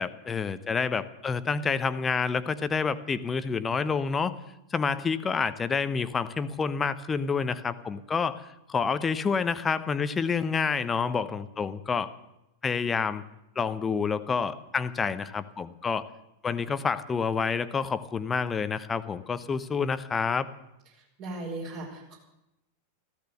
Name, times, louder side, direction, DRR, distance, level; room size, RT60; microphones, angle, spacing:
voice 1, 0.0-4.3 4.7-8.4 8.7-12.1 12.6-13.2 13.6-16.0 16.4-20.5, left 5 dB, 20° left, 14 dB, 0.9 m, -28 dB
voice 2, 21.2-22.2, right 2 dB, 45° right, -1 dB, 5.2 m, -37 dB
15.0 x 14.0 x 6.8 m, 0.89 s
figure-of-eight pair, 90°, 0 cm